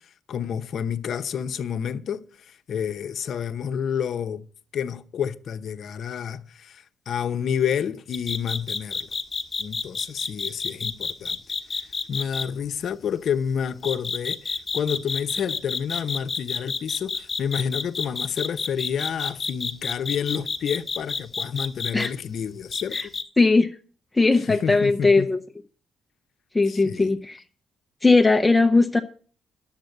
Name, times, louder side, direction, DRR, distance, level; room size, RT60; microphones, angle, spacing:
voice 1, 0.3-4.4 4.7-9.1 9.6-11.4 11.7-23.1 24.5-25.3 26.7-27.1, left 8 dB, 60° left, 0.9 m, -29 dB
sound 1, 8.1-12.4 13.8-22.1 22.7-23.2, left 4 dB, 30° left, 1.3 m, -29 dB
voice 2, 23.4-23.7 24.1-25.4 26.5-27.4 28.0-29.0, left 3 dB, 15° left, 0.9 m, -19 dB
10.5 x 7.4 x 8.0 m
cardioid pair, 90°, 0 cm